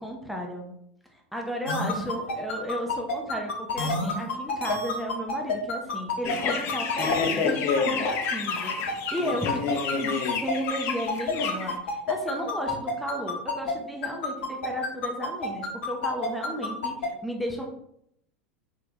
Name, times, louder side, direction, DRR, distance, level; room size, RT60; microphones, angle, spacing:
voice 1, 0.0-0.7 1.1-17.7, equal, ahead, 0 dB, 0.8 m, -34 dB
sound 1, 1.7-13.7 14.0-17.1, left 4 dB, 70° left, 1.0 m, -29 dB
sound 2, 6.2-11.8, left 6 dB, 40° left, 0.8 m, -29 dB
4.8 x 3.7 x 3.0 m, 0.74 s
figure-of-eight pair, 85°, 6 cm